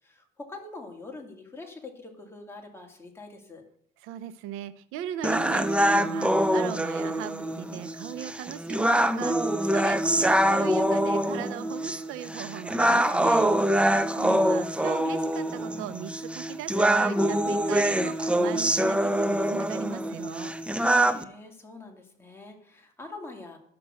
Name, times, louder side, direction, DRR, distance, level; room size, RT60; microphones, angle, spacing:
voice 1, 0.0-3.6 21.0-23.6, left 3 dB, 10° left, 1 dB, 2.4 m, -44 dB
voice 2, 4.0-20.6, right 11 dB, 85° right, 14 dB, 0.7 m, -39 dB
sound 1, 5.2-21.2, right 1 dB, 5° right, 0.6 m, -25 dB
11.0 x 6.1 x 6.3 m, 0.71 s
cardioid pair, 105°, 20 cm